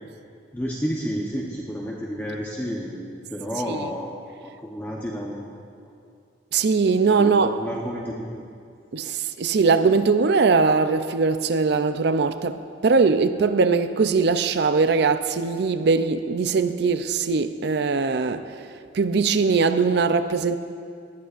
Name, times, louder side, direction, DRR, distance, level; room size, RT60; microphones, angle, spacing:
voice 1, 0.5-5.5 5.8-5.9 7.2-8.5, equal, 10° left, 0.8 m, -31 dB
voice 2, 6.5-7.6 8.9-18.7 18.9-20.6, right 4 dB, 55° right, 0.4 m, -21 dB
19.5 x 13.0 x 2.5 m
head